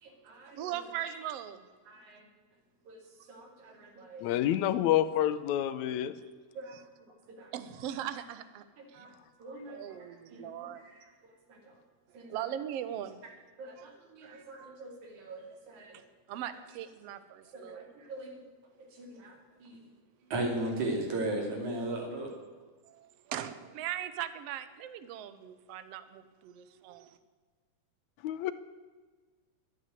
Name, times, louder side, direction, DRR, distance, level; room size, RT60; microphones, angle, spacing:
voice 1, 0.0-0.7 1.9-2.2 2.9-3.0 3.3-4.5 6.6-6.8 7.3-7.5 8.9-9.1 9.4-11.0 11.5-11.7 12.1-12.3 13.6-15.9 17.5-18.4 18.9-19.3 19.6-19.8 20.3-22.3, right 1 dB, 85° right, 1 dB, 4.0 m, -38 dB
voice 2, 0.6-1.7 6.7-6.8 7.5-8.7 8.9-9.1 9.7-10.8 12.2-13.2 13.8-13.9 14.2-14.8 16.3-17.9 22.9-27.2, right 11 dB, 70° right, 12 dB, 1.7 m, -40 dB
voice 3, 4.2-6.1 28.2-28.5, left 12 dB, 80° left, 13 dB, 2.0 m, -28 dB
12.5 x 9.4 x 9.3 m, 1.4 s
omnidirectional pair, 3.3 m